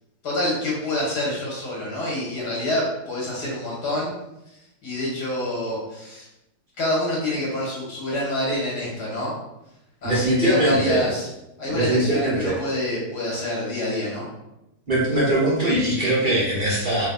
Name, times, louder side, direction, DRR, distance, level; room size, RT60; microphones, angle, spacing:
voice 1, 0.2-4.1 4.8-6.3 6.8-9.3 10.0-11.3 11.6-14.3, left 1 dB, 80° left, -5 dB, 2.2 m, -26 dB
voice 2, 10.0-11.1 11.6-12.6 14.9-17.1, right 1 dB, 35° right, -8 dB, 1.3 m, -21 dB
4.0 x 2.7 x 4.0 m, 0.89 s
omnidirectional pair, 1.7 m